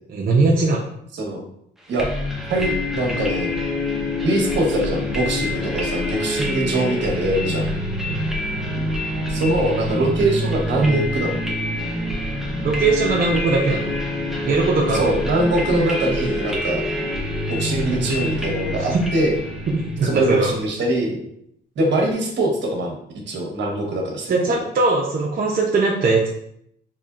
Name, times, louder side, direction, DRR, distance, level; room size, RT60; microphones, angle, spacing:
voice 1, 0.1-0.9 8.1-8.2 12.6-13.9 14.4-15.1 18.9-19.0 19.7-20.5 24.3-26.3, right 3 dB, 45° right, -2 dB, 0.6 m, -20 dB
sound 1, 2.0-20.7, left 1 dB, ahead, 0.8 m, -26 dB
voice 2, 2.5-3.5 4.2-7.7 9.3-11.4 14.9-16.8 17.5-19.4 20.0-21.2 21.8-23.0 23.3-24.6, right 1 dB, 65° right, 0 dB, 1.1 m, -22 dB
4.2 x 3.0 x 2.5 m, 0.73 s
cardioid pair, 90°, 20 cm